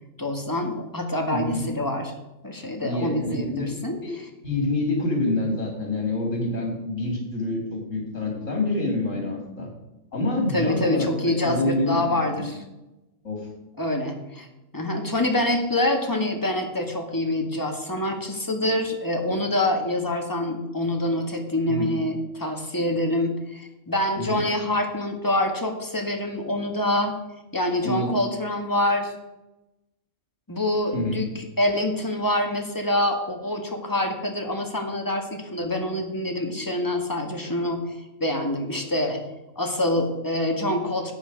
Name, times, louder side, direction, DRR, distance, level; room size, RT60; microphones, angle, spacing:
voice 1, 0.2-2.1 2.4-4.0 10.5-12.6 13.8-14.5 14.7-27.1 27.5-29.1 30.5-31.2 31.6-37.8 38.2-39.2 39.5-41.1, left 1 dB, 15° left, 3 dB, 1.6 m, -26 dB
voice 2, 1.3-1.6 2.8-4.2 4.4-9.7 10.1-12.5 13.2-13.5 21.7-21.9 24.2-24.4 27.8-28.1 30.9-31.2, left 2 dB, 65° left, 0 dB, 3.6 m, -27 dB
11.5 x 8.7 x 5.1 m, 0.97 s
omnidirectional pair, 1.4 m